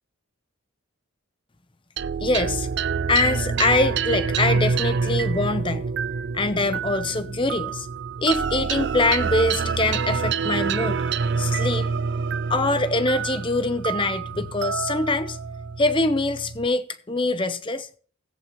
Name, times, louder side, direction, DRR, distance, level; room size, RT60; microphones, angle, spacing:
sound 1, 2.0-16.7, right 5 dB, 55° right, 0.4 m, -27 dB
voice 1, 2.2-2.7 3.1-5.8 6.3-7.9 8.2-11.9 12.5-15.4 15.8-17.9, left 2 dB, 25° left, 0.7 m, -24 dB
17.0 x 8.4 x 3.0 m
head